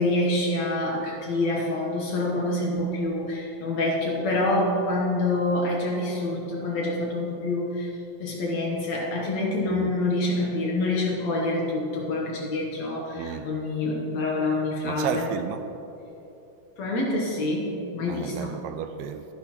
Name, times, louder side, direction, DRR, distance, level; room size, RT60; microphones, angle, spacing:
voice 1, 0.0-7.9 8.2-15.3 16.8-18.6, left 2 dB, 65° left, -2 dB, 2.0 m, -26 dB
voice 2, 13.2-13.5 14.8-15.6 18.1-19.3, right 8 dB, 85° right, 8 dB, 2.2 m, -32 dB
13.5 x 10.0 x 3.0 m, 2.9 s
omnidirectional pair, 4.0 m